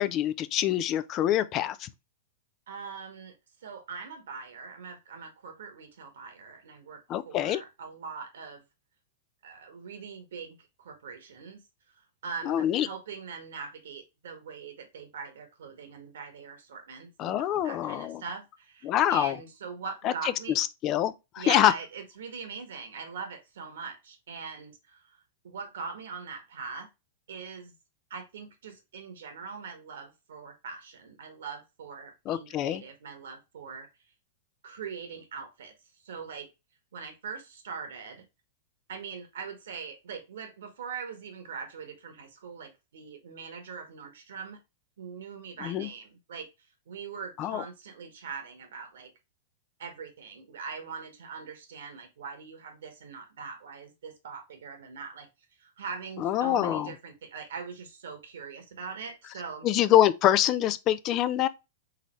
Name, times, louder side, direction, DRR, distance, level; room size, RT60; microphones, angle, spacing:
voice 1, 0.0-1.9 7.1-7.6 12.4-12.9 17.2-18.2 18.8-19.4 20.0-20.1 20.5-21.7 32.3-32.8 45.6-45.9 47.4-47.6 56.2-56.9 59.6-61.5, left 12 dB, 40° left, 0.5 m, -25 dB
voice 2, 2.7-3.3 3.6-7.0 7.2-8.6 9.4-11.6 11.9-20.6 21.4-25.2 25.4-26.9 27.3-27.7 28.1-33.9 34.6-35.7 36.0-36.5 36.9-38.2 38.9-44.6 45.0-46.5 46.9-49.1 49.8-55.3 55.6-59.7, right 5 dB, 75° right, 1.6 m, -42 dB
4.1 x 3.9 x 3.1 m
hypercardioid pair, 115°, 0 cm